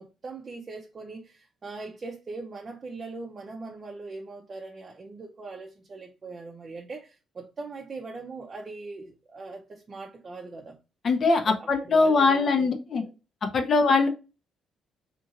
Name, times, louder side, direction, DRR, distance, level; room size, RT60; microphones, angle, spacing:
voice 1, 0.0-10.8 11.5-12.7 13.0-13.1, right 3 dB, 35° right, 0.5 m, -40 dB
voice 2, 11.0-13.0 13.5-14.1, left 4 dB, 50° left, 0.6 m, -22 dB
2.9 x 2.7 x 2.5 m
cardioid pair, 90°, 0 cm